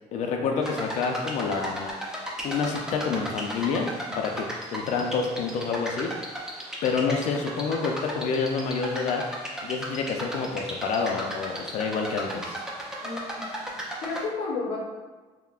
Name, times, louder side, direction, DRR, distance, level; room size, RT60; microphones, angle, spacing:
voice 1, 0.1-1.9 2.4-4.5 4.7-6.3 6.8-9.2 9.6-12.6, left 5 dB, 65° left, 2 dB, 0.4 m, -28 dB
sound 1, 0.6-14.2, equal, 5° right, 0.5 m, -36 dB
voice 2, 13.0-13.5 14.0-14.8, left 4 dB, 90° left, -5 dB, 0.8 m, -31 dB
5.6 x 2.1 x 2.3 m, 1.3 s
cardioid pair, 160°, 13 cm